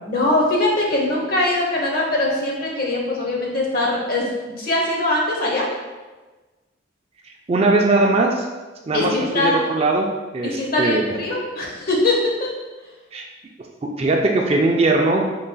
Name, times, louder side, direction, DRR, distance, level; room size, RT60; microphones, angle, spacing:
voice 1, 0.1-4.3 4.6-5.7 8.9-9.6 10.4-12.5, left 2 dB, 50° left, -2 dB, 0.9 m, -21 dB
voice 2, 7.5-8.5 8.9-11.2 13.1-13.2 13.8-15.3, right 2 dB, 30° right, 1 dB, 0.3 m, -20 dB
4.7 x 3.9 x 2.2 m, 1.2 s
head